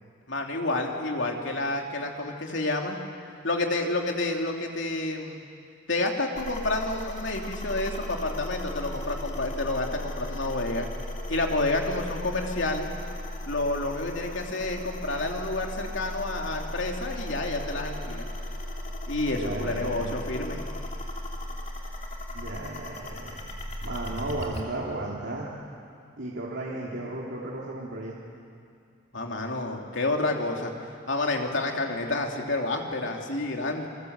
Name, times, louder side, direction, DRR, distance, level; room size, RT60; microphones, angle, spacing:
voice 1, 0.3-3.0 3.4-5.4 5.9-10.9 11.3-12.9 13.5-18.3 19.1-20.6 29.1-30.7 31.1-33.9, left 2 dB, 65° left, 1 dB, 2.9 m, -29 dB
sound 1, 6.3-24.6, left 1 dB, 35° left, 3.0 m, -36 dB
voice 2, 19.3-20.1 22.3-23.5 23.8-25.5 26.2-28.2, right 2 dB, 70° right, -5 dB, 2.9 m, -34 dB
28.5 x 22.0 x 8.1 m, 2.4 s
head